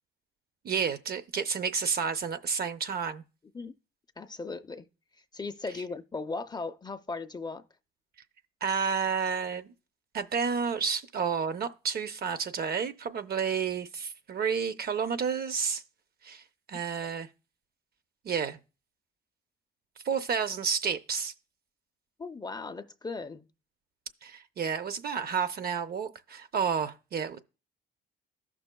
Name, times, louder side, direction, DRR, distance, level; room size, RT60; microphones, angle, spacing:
voice 1, 0.6-3.2 8.6-9.7 10.1-15.8 16.2-17.3 18.2-18.6 20.0-21.3 24.2-27.4, right 6 dB, 50° right, 0.7 m, -30 dB
voice 2, 4.2-4.9 5.3-7.6 22.2-23.5, left 3 dB, 20° left, 0.4 m, -37 dB
14.5 x 6.0 x 2.2 m
cardioid pair, 90°, 20 cm